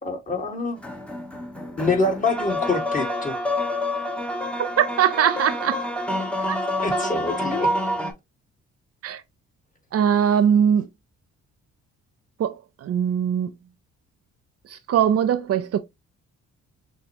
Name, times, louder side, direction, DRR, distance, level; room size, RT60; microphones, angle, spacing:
voice 1, 0.0-0.8 1.8-3.3 6.4-6.5 6.8-7.7, left 3 dB, 25° left, 1.7 m, -25 dB
sound 1, 0.8-8.1, left 1 dB, 5° left, 1.0 m, -28 dB
voice 2, 4.6-5.8 6.5-6.6 9.0-9.2 9.9-10.9 12.4-13.5 14.7-15.8, right 8 dB, 55° right, 0.5 m, -21 dB
6.4 x 2.2 x 2.8 m
cardioid pair, 90°, 30 cm